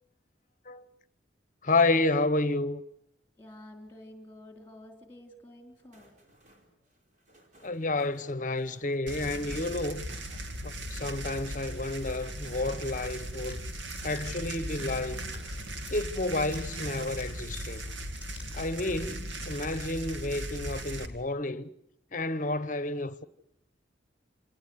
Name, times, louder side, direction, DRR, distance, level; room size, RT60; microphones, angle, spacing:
voice 1, 1.6-2.8 7.6-10.0 10.6-13.6 14.0-15.2 15.9-17.8 18.5-21.7 22.1-23.2, left 2 dB, 40° left, 1.0 m, -30 dB
voice 2, 3.4-6.1, left 1 dB, 10° left, 3.8 m, -49 dB
sound 1, 5.7-18.5 18.8-20.0, right 1 dB, 40° right, 4.2 m, -60 dB
sound 2, 9.1-21.1, right 1 dB, 85° right, 2.4 m, -38 dB
sound 3, 13.5-18.7, left 1 dB, 10° right, 6.0 m, -52 dB
27.5 x 18.5 x 8.0 m
head